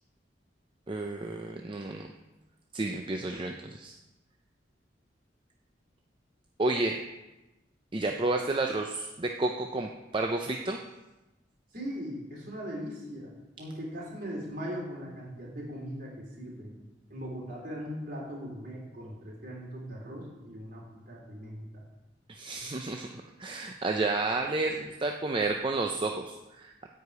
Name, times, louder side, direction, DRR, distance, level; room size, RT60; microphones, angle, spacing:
voice 1, 0.9-2.1 2.7-4.0 6.6-7.0 7.9-10.8 22.3-26.9, right 2 dB, 30° right, 3 dB, 0.5 m, -31 dB
voice 2, 11.7-13.3 13.6-16.8 17.1-21.8, equal, 55° right, -4 dB, 3.7 m, -39 dB
10.5 x 4.8 x 8.1 m, 1.0 s
head